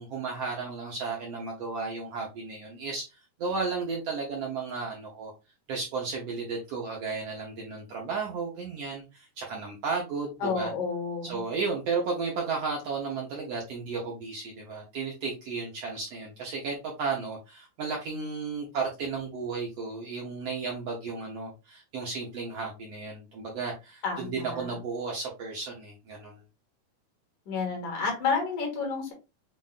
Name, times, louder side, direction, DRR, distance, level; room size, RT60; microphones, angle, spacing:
voice 1, 0.0-5.3 5.7-10.7 11.2-26.4, right 4 dB, 65° right, -1 dB, 1.6 m, -34 dB
voice 2, 10.4-11.4 24.0-24.8 27.5-29.1, left 5 dB, 70° left, 0 dB, 3.2 m, -30 dB
7.3 x 2.5 x 2.4 m, 0.27 s
omnidirectional pair, 3.8 m